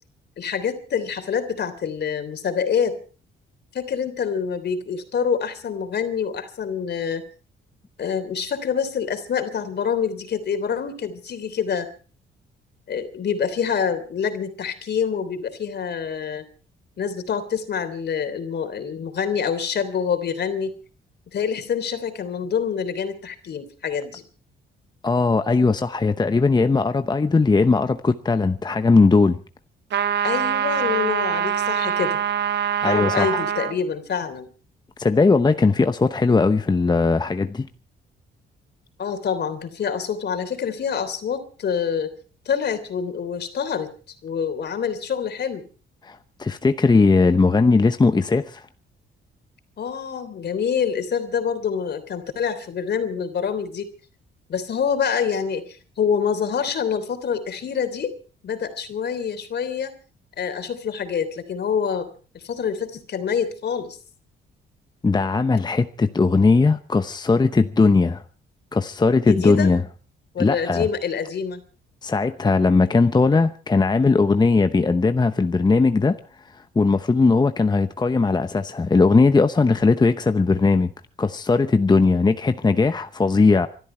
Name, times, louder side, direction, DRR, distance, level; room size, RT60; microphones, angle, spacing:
voice 1, 0.4-3.0 3.7-7.2 8.0-11.9 12.9-16.4 17.0-20.7 21.3-24.2 30.2-32.2 32.8-34.5 39.0-42.1 42.4-43.9 44.2-45.6 49.8-53.9 54.5-58.1 58.4-59.9 60.4-62.1 62.3-64.0 69.3-69.7 70.3-71.6, left 7 dB, 55° left, 3.2 m, -26 dB
voice 2, 25.0-29.4 32.8-33.4 35.0-37.7 46.0-48.7 65.0-68.2 68.7-69.8 70.4-70.8 72.0-76.2 76.5-80.9 81.2-83.7, left 4 dB, 20° left, 0.9 m, -19 dB
sound 1, 29.9-33.8, right 9 dB, 60° right, 1.3 m, -24 dB
25.5 x 12.5 x 4.5 m
cardioid pair, 90°, 20 cm